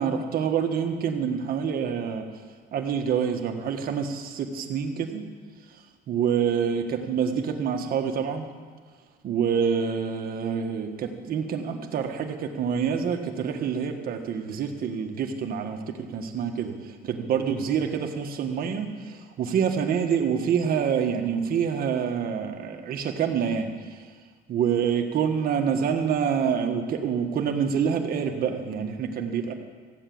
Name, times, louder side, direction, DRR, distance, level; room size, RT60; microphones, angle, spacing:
voice 1, 0.0-2.3 2.7-5.2 5.7-8.5 9.2-24.1 24.5-29.5, right 7 dB, 60° right, 4 dB, 1.6 m, -27 dB
15.5 x 8.2 x 7.8 m, 1.5 s
cardioid pair, 110°, 17 cm